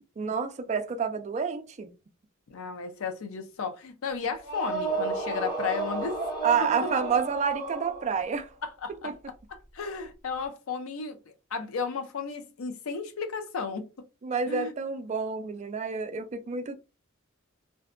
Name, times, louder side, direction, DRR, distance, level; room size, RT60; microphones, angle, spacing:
voice 1, 0.2-1.9 6.4-8.5 9.0-9.1 14.2-16.8, right 6 dB, 35° right, 0.3 m, -29 dB
voice 2, 2.5-6.2 8.6-9.1 9.5-11.2 11.5-13.9 14.5-14.7, left 5 dB, 70° left, 0.5 m, -34 dB
sound 1, 4.4-8.4, right 3 dB, 55° left, 1.4 m, -32 dB
2.5 x 2.1 x 2.4 m
head